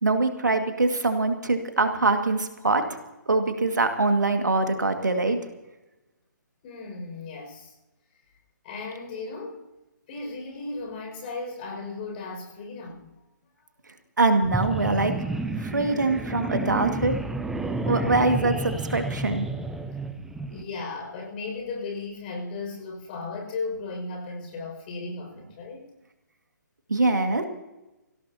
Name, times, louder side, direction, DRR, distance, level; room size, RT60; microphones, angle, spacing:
voice 1, 0.0-3.0 3.3-5.4 14.2-15.1 15.6-17.2 17.8-19.4 26.9-27.4, right 3 dB, 70° right, 6 dB, 2.1 m, -23 dB
voice 2, 6.6-7.7 8.6-9.6 10.1-13.1 20.5-25.9, left 3 dB, 30° left, 2 dB, 6.1 m, -36 dB
sound 1, 14.4-20.6, right 2 dB, 5° right, 0.7 m, -30 dB
25.0 x 16.5 x 2.9 m, 1.0 s
figure-of-eight pair, 135°, 10 cm